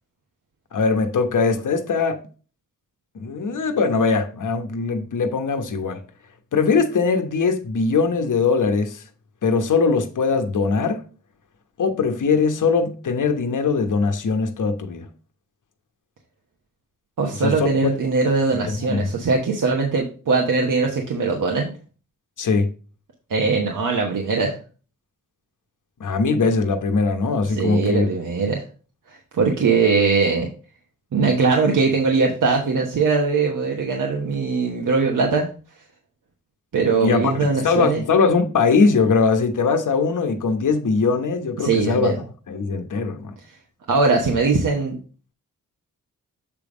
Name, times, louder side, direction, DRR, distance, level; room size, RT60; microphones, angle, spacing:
voice 1, 0.7-2.2 3.1-6.0 6.5-9.0 9.4-11.0 11.8-15.1 17.4-17.9 18.7-19.1 22.4-22.7 26.0-28.1 37.0-42.1 42.5-43.3, left 4 dB, 65° left, 1.1 m, -21 dB
voice 2, 17.2-21.7 23.3-24.6 27.4-28.6 29.1-30.5 31.1-35.5 36.7-38.0 41.6-42.2 43.9-45.0, right 4 dB, 70° right, 1.3 m, -21 dB
7.5 x 3.5 x 5.0 m
cardioid pair, 50°, 33 cm